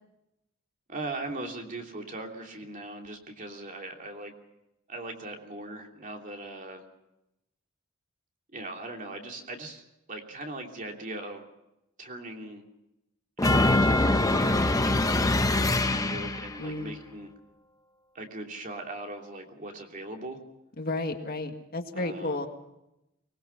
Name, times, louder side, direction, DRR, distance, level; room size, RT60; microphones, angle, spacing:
voice 1, 0.9-4.3 4.9-6.8 8.5-9.8 10.1-11.5 12.0-12.6 13.4-17.3 18.1-20.4 21.9-22.4, right 2 dB, 40° right, 2 dB, 2.9 m, -39 dB
sound 1, 13.4-16.6, left 2 dB, 15° left, 0.9 m, -23 dB
voice 2, 16.6-17.0 20.8-22.5, left 2 dB, 45° left, 5 dB, 1.9 m, -33 dB
24.0 x 20.0 x 5.8 m, 0.89 s
head